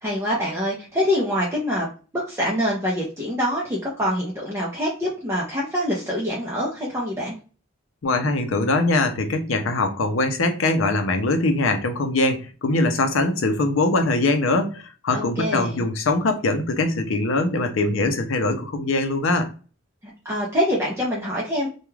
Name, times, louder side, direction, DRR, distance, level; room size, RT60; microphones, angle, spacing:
voice 1, 0.0-1.9 2.1-7.4 15.1-15.8 20.2-21.7, equal, 15° right, 0.6 m, -25 dB
voice 2, 8.0-19.5, left 2 dB, 75° left, 0.6 m, -22 dB
2.3 x 2.3 x 3.0 m
head